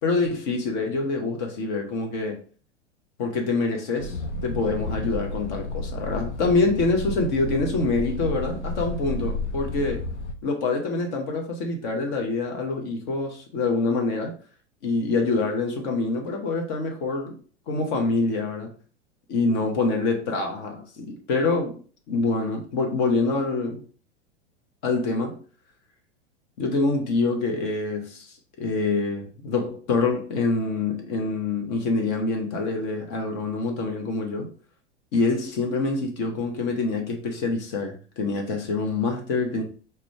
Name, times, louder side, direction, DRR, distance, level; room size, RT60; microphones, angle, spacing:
voice 1, 0.0-2.4 3.2-10.0 10.4-14.3 14.8-17.4 17.7-18.7 19.3-21.8 22.1-23.8 24.8-25.4 26.6-28.3 28.6-34.5 35.1-39.6, left 3 dB, 40° left, 0.9 m, -26 dB
sound 1, 4.0-10.3, left 2 dB, 80° left, 0.6 m, -31 dB
4.9 x 2.2 x 3.2 m
figure-of-eight pair, 95°, 34 cm